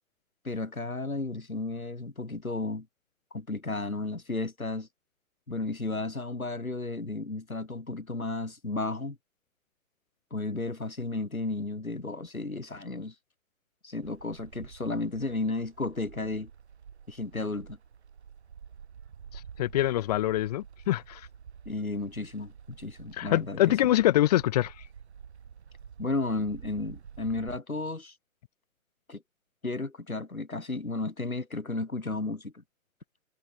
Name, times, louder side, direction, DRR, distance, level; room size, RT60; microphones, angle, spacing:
voice 1, 0.4-2.9 3.3-4.9 5.5-9.2 10.3-13.1 13.8-16.5 17.1-17.8 21.7-23.7 26.0-28.1 29.1-29.2 29.6-32.6, left 2 dB, 80° left, 5.9 m, -33 dB
sound 1, 14.0-27.6, right 7 dB, 50° right, 7.1 m, -49 dB
voice 2, 19.6-21.2 23.2-24.7, left 14 dB, 30° left, 1.7 m, -24 dB
figure-of-eight pair, 130°, 42 cm